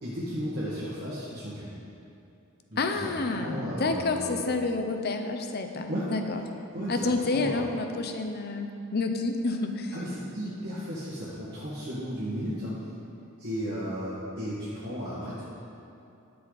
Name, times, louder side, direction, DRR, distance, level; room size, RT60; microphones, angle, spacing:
voice 1, 0.0-1.7 2.7-4.4 5.9-6.1 6.7-7.6 9.9-12.8 13.4-15.4, equal, 50° right, -10 dB, 1.8 m, -34 dB
voice 2, 2.8-6.4 6.9-9.9, left 3 dB, 45° left, 6 dB, 0.6 m, -29 dB
11.5 x 6.9 x 4.0 m, 2.7 s
head